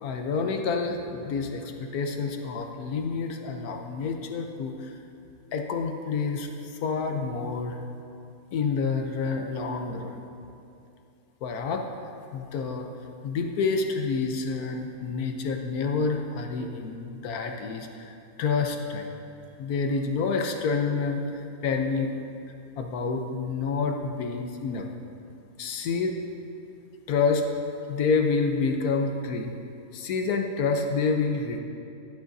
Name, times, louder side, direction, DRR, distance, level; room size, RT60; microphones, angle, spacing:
voice 1, 0.0-5.0 5.5-7.8 8.5-10.3 11.4-11.9 12.3-12.9 13.2-19.1 19.6-22.1 22.8-24.9 25.6-26.2 27.1-27.4 27.9-29.5 29.9-31.6, left 4 dB, 80° left, 4 dB, 1.2 m, -28 dB
12.0 x 10.5 x 2.6 m, 2.6 s
omnidirectional pair, 1.6 m